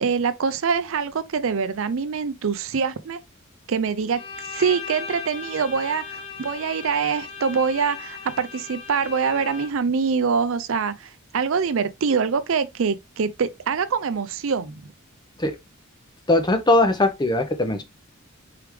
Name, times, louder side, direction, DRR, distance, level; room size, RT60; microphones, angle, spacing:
voice 1, 0.0-3.2 3.7-4.2 4.5-14.7, right 5 dB, 65° right, 0.5 m, -24 dB
Bowed string instrument, 4.1-9.9, left 5 dB, 75° left, 1.5 m, -37 dB
voice 2, 16.3-17.8, left 2 dB, 20° left, 0.7 m, -20 dB
4.7 x 3.4 x 3.1 m
head